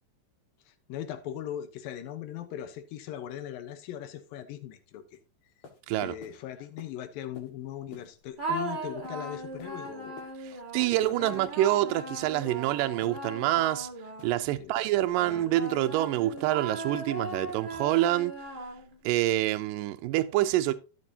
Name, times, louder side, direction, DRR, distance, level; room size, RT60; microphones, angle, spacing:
voice 1, 0.7-5.2 6.0-10.2 10.5-10.6 10.9-11.5 14.6-14.7, left 11 dB, 85° left, 2.7 m, -39 dB
sound 1, 5.1-5.2 5.6-5.8 6.2-6.4 6.8-6.9 7.3-7.5 7.9-8.1 8.5-8.6 9.0-9.2 9.6-9.8 10.2-10.3 10.7-10.9 11.3-11.5 11.9-12.1 12.5-12.6 13.0-13.2 13.6-13.7 14.2-14.3 14.8-14.9 15.3-15.4 15.8-16.0 16.4-16.5 16.9-17.1 17.5-17.6, left 5 dB, 55° left, 2.7 m, -49 dB
sound 2, 8.4-14.6 15.2-19.1, right 3 dB, 20° right, 1.4 m, -38 dB
voice 2, 10.5-13.9 14.2-18.4 19.0-20.7, right 14 dB, 80° right, 2.3 m, -26 dB
13.5 x 6.7 x 2.8 m
omnidirectional pair, 4.0 m